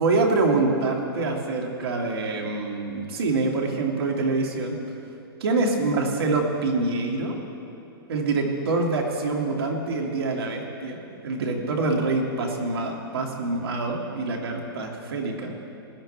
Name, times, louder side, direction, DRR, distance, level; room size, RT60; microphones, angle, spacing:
voice 1, 0.0-4.8 5.4-7.4 8.1-15.6, right 3 dB, 75° right, 1 dB, 2.2 m, -25 dB
19.5 x 10.5 x 3.3 m, 2.9 s
hypercardioid pair, 160°, 13 cm